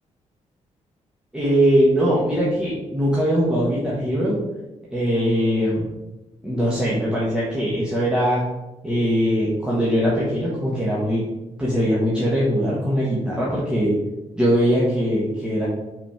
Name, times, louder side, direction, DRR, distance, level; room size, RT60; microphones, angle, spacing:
voice 1, 1.3-4.4 4.9-5.9 6.4-8.4 8.8-11.2 11.6-13.9 14.3-15.7, equal, 5° right, -7 dB, 1.4 m, -21 dB
5.8 x 4.1 x 5.7 m, 1.0 s
wide cardioid pair, 155°, 13 cm